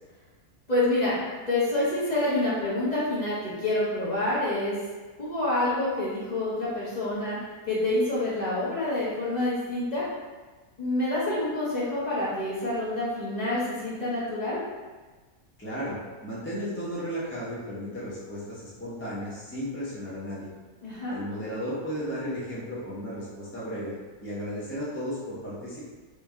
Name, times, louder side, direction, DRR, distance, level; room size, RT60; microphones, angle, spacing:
voice 1, 0.7-1.2 1.5-4.8 5.2-7.4 7.7-10.0 10.8-14.6 20.8-21.2, left 2 dB, 35° left, -9 dB, 0.8 m, -27 dB
voice 2, 15.6-20.5 21.1-23.9 24.2-25.8, equal, 15° left, -9 dB, 0.5 m, -34 dB
3.1 x 2.6 x 3.4 m, 1.3 s
omnidirectional pair, 1.6 m